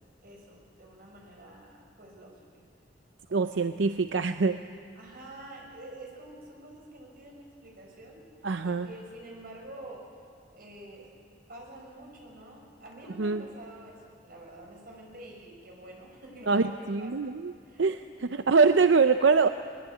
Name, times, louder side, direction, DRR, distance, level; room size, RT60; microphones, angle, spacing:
voice 1, 0.2-2.6 3.3-3.8 4.9-8.2 8.6-10.1 10.5-11.1 11.5-17.3 17.6-18.1, right 1 dB, 55° right, -1 dB, 6.2 m, -48 dB
voice 2, 3.3-4.6 8.4-8.9 13.2-13.4 16.5-17.5 17.8-18.0 18.5-19.5, right 4 dB, 85° right, 9 dB, 0.6 m, -23 dB
22.5 x 20.5 x 8.4 m, 2.2 s
head